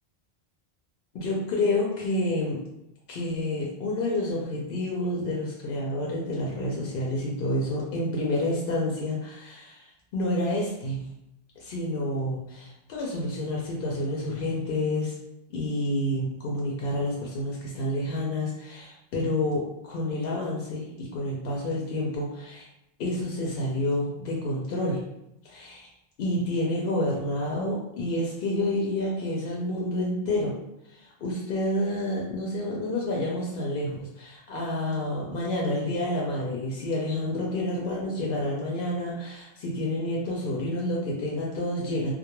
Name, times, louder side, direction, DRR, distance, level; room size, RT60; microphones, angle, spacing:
voice 1, 1.1-2.6 3.1-11.1 11.6-15.1 15.5-22.7 23.0-25.0 25.4-25.9 26.2-30.5 30.8-42.1, left 1 dB, 70° left, -3 dB, 0.7 m, -29 dB
2.2 x 2.1 x 2.9 m, 0.85 s
omnidirectional pair, 1.0 m